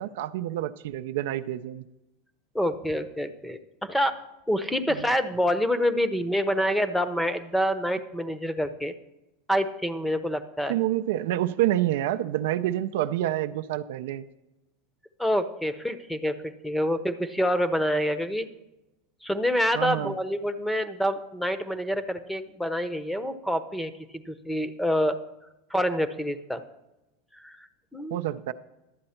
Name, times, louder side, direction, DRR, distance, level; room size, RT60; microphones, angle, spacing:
voice 1, 0.0-1.8 4.9-5.1 10.7-14.3 19.7-20.2 28.1-28.5, right 13 dB, 70° right, 10 dB, 0.4 m, -28 dB
voice 2, 2.5-4.1 4.5-8.9 9.5-10.8 15.2-18.5 19.2-25.2 25.7-26.6 27.4-27.6 27.9-28.2, equal, 5° left, 11 dB, 0.7 m, -27 dB
11.5 x 7.7 x 4.4 m, 0.97 s
hypercardioid pair, 105°, 0 cm